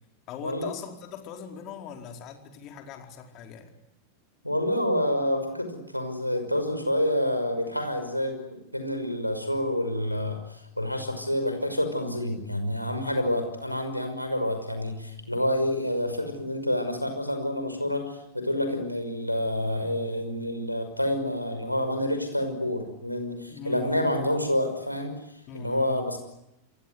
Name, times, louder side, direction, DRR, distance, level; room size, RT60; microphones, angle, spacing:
voice 1, 0.3-3.7 13.0-13.3 23.5-24.2 25.5-26.1, left 7 dB, 35° left, 4 dB, 4.7 m, -41 dB
voice 2, 4.4-26.2, left 1 dB, 90° left, 6 dB, 5.8 m, -28 dB
28.5 x 23.5 x 8.0 m, 0.86 s
figure-of-eight pair, 90°, 0 cm